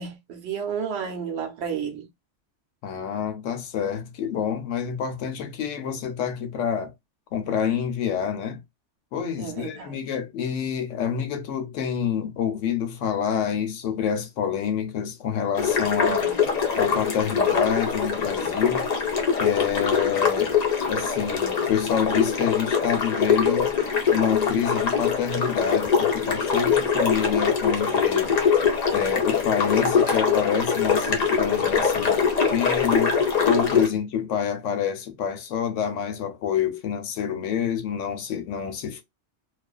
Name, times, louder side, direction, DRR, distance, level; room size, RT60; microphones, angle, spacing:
voice 1, 0.0-2.1 9.4-10.0 16.0-16.4 33.9-34.0, right 7 dB, 65° right, 0.9 m, -32 dB
voice 2, 2.8-6.9 7.3-8.6 9.1-16.2 16.7-18.8 19.4-20.5 20.9-23.7 24.1-28.4 28.9-32.2 32.5-33.1 33.4-39.0, left 8 dB, 80° left, 1.0 m, -27 dB
sound 1, 15.5-33.9, left 6 dB, 45° left, 0.6 m, -23 dB
2.4 x 2.3 x 2.3 m
omnidirectional pair, 1.3 m